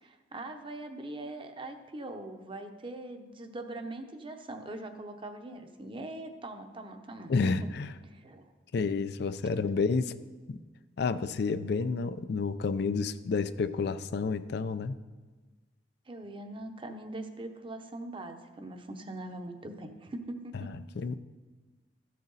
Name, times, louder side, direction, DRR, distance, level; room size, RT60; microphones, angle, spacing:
voice 1, 0.0-7.7 8.1-8.5 16.1-20.7, right 2 dB, 30° right, 6 dB, 0.8 m, -42 dB
voice 2, 7.3-7.9 8.7-10.2 10.5-10.6 11.0-15.0 20.7-21.2, left 4 dB, 65° left, 12 dB, 0.4 m, -30 dB
13.5 x 6.5 x 4.0 m, 1.3 s
head